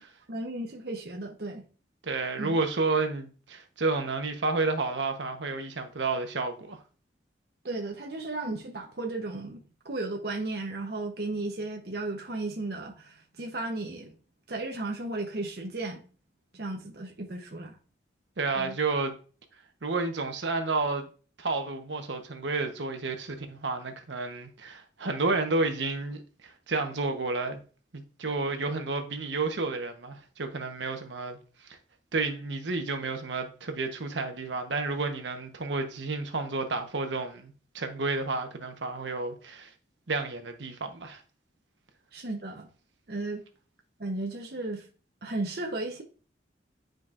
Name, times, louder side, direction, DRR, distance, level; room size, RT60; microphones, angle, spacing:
voice 1, 0.3-1.6 2.4-2.6 7.6-14.2 14.5-16.0 16.5-17.8 18.6-18.8 42.1-42.7 43.1-43.4 44.0-44.9 45.2-46.0, right 2 dB, 60° right, 0.9 m, -35 dB
voice 2, 2.0-6.8 18.4-19.1 19.8-21.1 21.4-27.6 27.9-31.4 31.7-31.8 32.1-39.7 40.1-41.2, right 3 dB, 85° right, 1.0 m, -31 dB
9.7 x 5.2 x 2.5 m
head